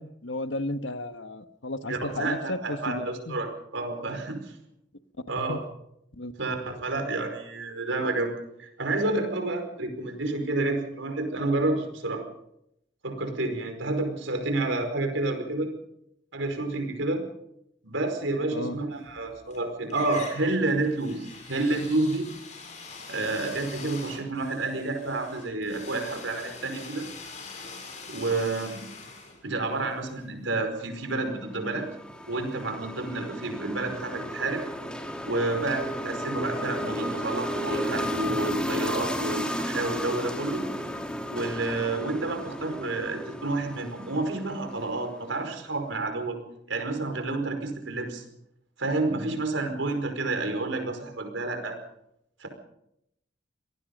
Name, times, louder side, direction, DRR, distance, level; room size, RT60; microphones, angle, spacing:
voice 1, 0.0-3.4 5.4-5.6 6.1-6.3 18.5-18.8, left 1 dB, 75° left, 9 dB, 1.4 m, -34 dB
voice 2, 1.9-4.4 5.3-5.6 6.4-8.3 8.6-12.2 13.0-15.7 16.3-17.2 17.8-22.3 23.1-27.0 28.1-28.8 29.4-31.9 32.3-34.6 35.3-40.6 41.3-46.4 46.7-48.2 48.8-51.7 52.4-52.5, right 2 dB, 90° right, 5 dB, 5.0 m, -29 dB
sound 1, 19.0-19.6 19.9-30.8, left 4 dB, 40° left, 6.8 m, -44 dB
sound 2, 31.1-45.4, equal, 5° left, 2.5 m, -34 dB
26.5 x 18.5 x 5.4 m, 0.78 s
head